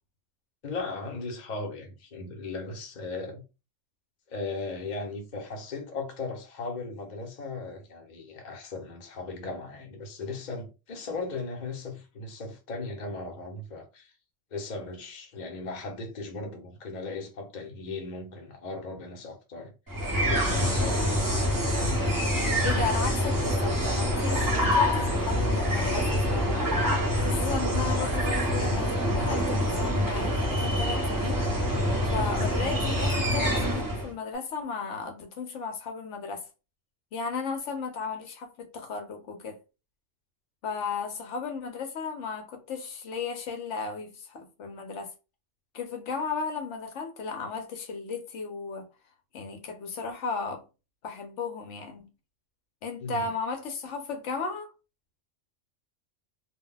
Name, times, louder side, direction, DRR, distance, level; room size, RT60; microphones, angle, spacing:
voice 1, 0.6-3.4 4.3-14.1 14.5-19.7 20.3-21.6 53.0-53.3, left 3 dB, 45° left, 0.8 m, -37 dB
sound 1, 19.9-34.1, equal, 20° right, 0.7 m, -26 dB
voice 2, 22.6-26.7 27.2-31.4 32.1-36.5 37.1-39.6 40.6-45.1 45.7-48.9 49.3-50.6 51.0-52.1 52.8-54.7, left 5 dB, 75° left, 0.9 m, -35 dB
2.2 x 2.2 x 3.7 m
omnidirectional pair, 1.3 m